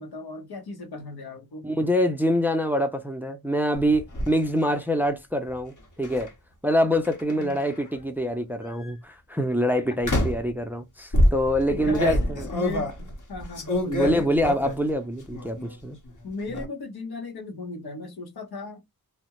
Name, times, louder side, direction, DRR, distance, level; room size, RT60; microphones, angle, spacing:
voice 1, 0.0-1.6 7.3-7.6 11.7-12.9 13.3-14.3 16.2-18.8, left 3 dB, 85° left, 0.9 m, -36 dB
voice 2, 1.6-6.3 6.6-12.5 13.9-16.0, equal, 5° right, 0.4 m, -25 dB
sound 1, 3.7-4.3 6.0-6.3 7.0-7.9 8.6-8.9 10.0-10.5 11.1-14.9 15.2-15.8 16.1-16.7, left 1 dB, 55° left, 0.9 m, -26 dB
2.4 x 2.1 x 2.9 m
wide cardioid pair, 70°, 37 cm